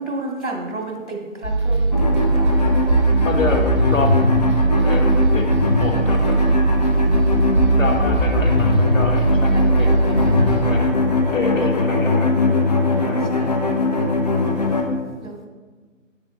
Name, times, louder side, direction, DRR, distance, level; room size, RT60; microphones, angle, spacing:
voice 1, 0.0-2.7 9.1-10.5 12.9-13.7 15.2-15.5, right 2 dB, 60° right, 0 dB, 2.1 m, -33 dB
sound 1, 1.4-10.7, right 1 dB, 20° right, 1.0 m, -18 dB
sound 2, 1.9-14.8, left 3 dB, 30° left, 0.8 m, -22 dB
voice 2, 3.2-4.3 4.8-5.5 5.8-6.4 7.8-9.9 10.6-10.9 11.3-12.4 13.0-13.2 14.7-15.1, left 2 dB, 75° left, 3 dB, 1.5 m, -27 dB
9.6 x 8.3 x 2.9 m, 1.4 s
figure-of-eight pair, 150°, 39 cm